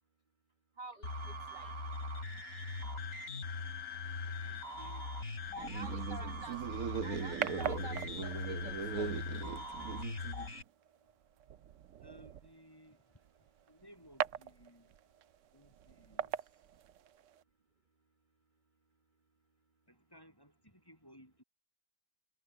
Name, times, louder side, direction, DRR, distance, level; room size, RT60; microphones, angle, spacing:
voice 1, 0.8-1.7 5.5-6.6 7.0-9.1, right 4 dB, 35° right, 1.4 m, -49 dB
sound 1, 1.0-10.6, left 3 dB, 80° left, 3.7 m, -41 dB
voice 2, 4.0-5.1 12.0-13.2 13.7-14.9 15.5-16.5 19.9-21.4, equal, 15° left, 7.9 m, -60 dB
sound 2, 5.5-10.6, right 7 dB, 85° right, 1.5 m, -40 dB
sound 3, 6.4-17.4, right 10 dB, 65° right, 0.9 m, -44 dB
omnidirectional pair, 1.5 m